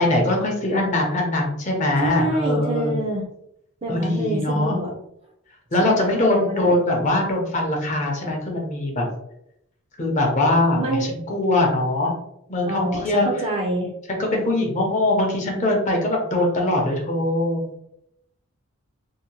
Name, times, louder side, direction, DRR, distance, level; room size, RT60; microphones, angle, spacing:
voice 1, 0.0-2.9 3.9-4.7 5.7-9.1 10.0-12.1 12.5-13.3 14.1-17.7, left 1 dB, 35° left, 0 dB, 0.6 m, -22 dB
voice 2, 2.0-3.2 3.8-4.9 5.8-6.8 10.7-11.1 12.6-13.9, right 1 dB, 25° right, 0 dB, 0.5 m, -26 dB
2.7 x 2.1 x 2.9 m, 0.77 s
head